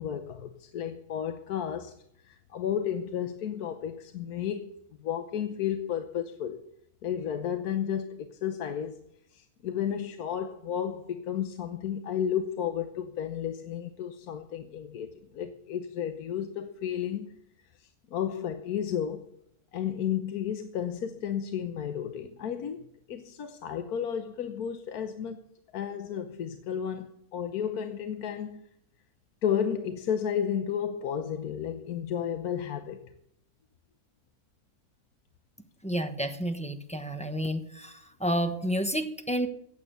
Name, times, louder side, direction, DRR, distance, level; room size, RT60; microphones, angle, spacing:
voice 1, 0.0-1.9 2.2-4.7 5.0-6.6 7.0-9.0 9.3-17.4 17.8-19.3 19.7-25.4 25.7-28.6 29.4-33.0, left 9 dB, 85° left, 1.4 m, -32 dB
voice 2, 35.8-39.5, equal, 5° left, 0.9 m, -30 dB
15.0 x 9.2 x 6.8 m
omnidirectional pair, 1.6 m